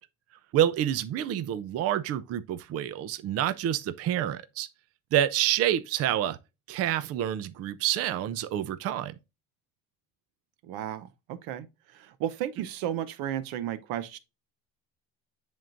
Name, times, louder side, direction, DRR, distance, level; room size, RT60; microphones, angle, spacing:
voice 1, 0.5-4.7 5.1-6.4 6.7-9.1, right 11 dB, 45° right, 0.5 m, -28 dB
voice 2, 10.6-14.2, right 11 dB, 80° right, 0.8 m, -34 dB
10.5 x 3.7 x 2.5 m
cardioid pair, 135°, 34 cm